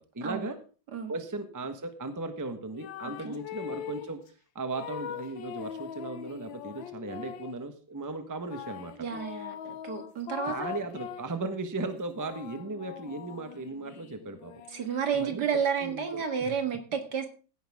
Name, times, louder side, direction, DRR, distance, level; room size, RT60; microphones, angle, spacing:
voice 1, 0.1-0.5 1.1-4.2 4.5-9.1 10.4-14.5 15.1-15.4 15.8-16.5, right 2 dB, 10° right, 8 dB, 1.1 m, -37 dB
sound 1, 2.7-4.2 4.7-7.6 8.5-11.4 11.9-15.5, left 10 dB, 85° left, 1.5 m, -42 dB
voice 2, 9.0-10.7 14.7-17.3, right 7 dB, 60° right, 6 dB, 2.3 m, -31 dB
16.0 x 10.5 x 3.6 m, 0.36 s
omnidirectional pair, 2.0 m